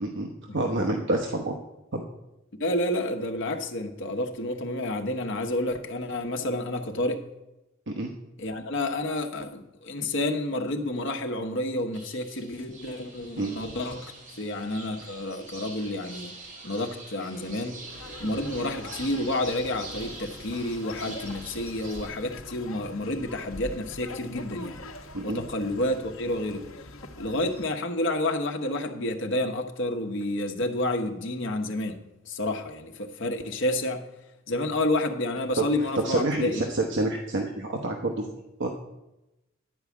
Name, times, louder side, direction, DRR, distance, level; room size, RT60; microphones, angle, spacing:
voice 1, 0.0-1.5 1.9-2.0 7.9-8.1 13.4-13.5 18.3-18.4 25.1-25.4 36.0-38.7, right 2 dB, 60° right, 2 dB, 1.0 m, -28 dB
voice 2, 2.6-7.2 8.4-16.4 16.6-17.8 18.2-24.8 25.2-26.7 27.2-34.0 34.5-36.6, left 1 dB, 65° left, 5 dB, 1.2 m, -30 dB
sound 1, 11.9-22.1, right 3 dB, 40° right, 2.2 m, -45 dB
sound 2, 17.9-27.7, left 2 dB, 85° left, 1.0 m, -43 dB
11.0 x 4.8 x 8.3 m, 0.94 s
head